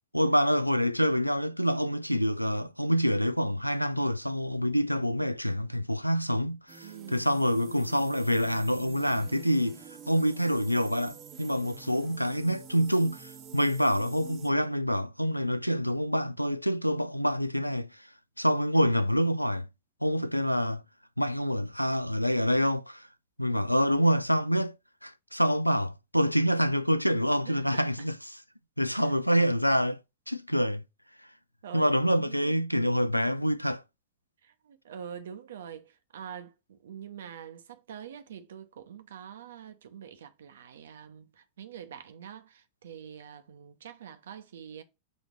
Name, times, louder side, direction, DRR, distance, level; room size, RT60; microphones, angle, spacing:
voice 1, 0.1-17.9 18.4-19.7 20.0-20.8 21.2-23.1 23.4-24.8 25.0-28.1 28.8-30.0 30.3-30.8 31.7-33.8, equal, 90° left, 0.4 m, -26 dB
sound 1, 6.7-14.5, right 6 dB, 35° right, 1.1 m, -48 dB
voice 2, 6.8-7.3 27.5-27.9 29.0-29.1 31.6-32.6 34.4-44.8, right 8 dB, 65° right, 0.9 m, -45 dB
6.3 x 2.9 x 5.2 m
figure-of-eight pair, 90°, 0 cm